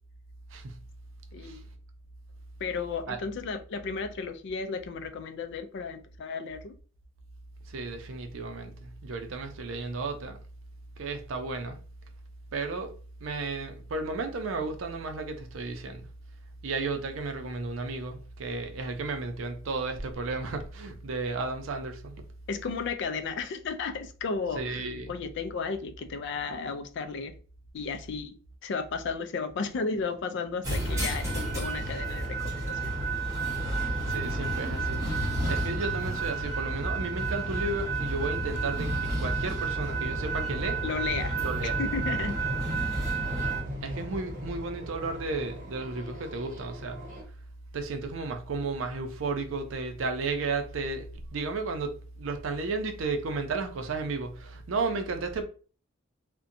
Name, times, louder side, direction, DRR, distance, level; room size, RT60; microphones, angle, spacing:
voice 1, 1.3-1.6 2.6-6.7 22.5-27.3 27.7-28.3 28.6-33.0 40.8-41.4 41.8-42.4, left 5 dB, 60° left, 0.3 m, -34 dB
voice 2, 7.7-10.4 11.0-11.8 12.5-16.1 16.6-22.2 24.5-25.1 34.1-40.8 41.4-41.8 43.8-47.0 47.7-55.4, right 3 dB, 80° right, 0.5 m, -33 dB
sound 1, 30.6-43.6, right 3 dB, 15° right, 1.1 m, -31 dB
sound 2, 31.9-47.2, left 1 dB, 40° right, 0.8 m, -41 dB
2.6 x 2.1 x 2.5 m
head